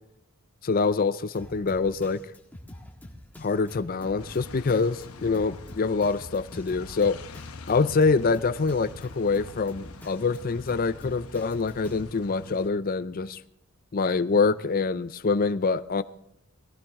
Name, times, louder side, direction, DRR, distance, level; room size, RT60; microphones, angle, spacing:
voice 1, 0.6-2.2 3.4-7.2 7.7-13.4 13.9-16.0, left 4 dB, 40° left, 0.5 m, -25 dB
Drum kit, 1.3-12.0, left 1 dB, 10° left, 1.6 m, -46 dB
sound 1, 4.2-12.7, left 3 dB, 85° left, 0.9 m, -45 dB
20.0 x 15.0 x 3.6 m
head